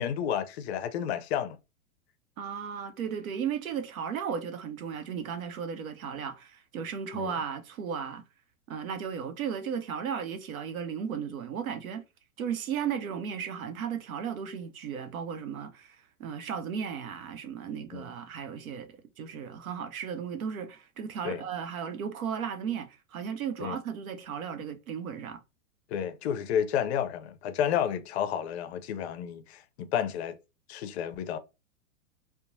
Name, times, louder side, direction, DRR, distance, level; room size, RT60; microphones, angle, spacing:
voice 1, 0.0-1.6 7.1-7.4 17.9-18.1 21.2-21.4 23.6-23.8 25.9-30.4 30.7-31.4, left 9 dB, 50° left, 0.5 m, -31 dB
voice 2, 2.4-8.2 8.7-12.0 12.4-25.4, right 7 dB, 70° right, 0.7 m, -35 dB
2.9 x 2.0 x 2.6 m
hypercardioid pair, 115°, 43 cm